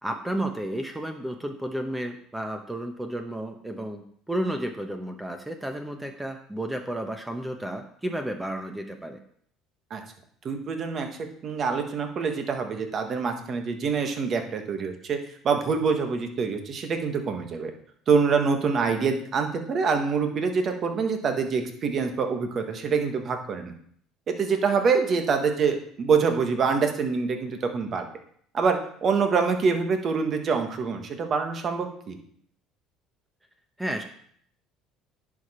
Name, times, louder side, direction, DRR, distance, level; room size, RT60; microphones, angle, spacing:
voice 1, 0.0-9.2 33.8-34.0, right 1 dB, 10° right, 5 dB, 0.9 m, -32 dB
voice 2, 10.4-11.1 11.4-15.2 15.4-17.7 18.1-23.7 24.3-28.0 28.5-32.2, right 5 dB, 45° right, 5 dB, 1.5 m, -25 dB
10.5 x 5.0 x 4.3 m, 0.62 s
supercardioid pair, 95°, 0 cm